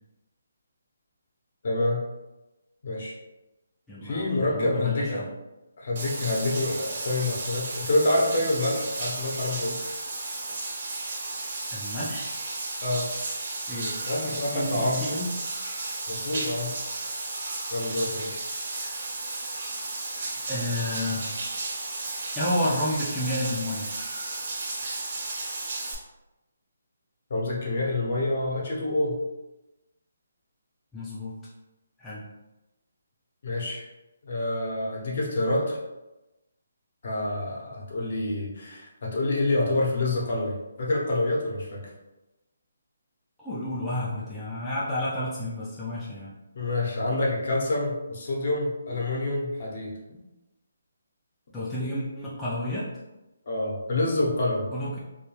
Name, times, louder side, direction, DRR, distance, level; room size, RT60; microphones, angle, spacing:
voice 1, 1.6-2.0 2.8-3.1 4.0-5.2 5.8-9.8 12.8-13.1 14.1-15.1 16.1-16.7 17.7-18.4 27.3-29.2 33.4-33.9 34.2-35.8 37.0-41.8 46.5-49.9 53.5-54.7, left 2 dB, 50° left, -3 dB, 0.7 m, -27 dB
voice 2, 3.9-5.3 11.7-12.3 13.7-14.0 14.2-15.3 20.2-21.3 22.3-23.9 30.9-31.3 32.0-32.3 43.4-46.3 51.5-52.9 54.7-55.0, left 1 dB, 5° left, -10 dB, 0.3 m, -31 dB
Bathtub (filling or washing), 6.0-26.0, right 2 dB, 45° right, 0.6 m, -34 dB
2.3 x 2.2 x 3.1 m, 1.0 s
hypercardioid pair, 170°, 0 cm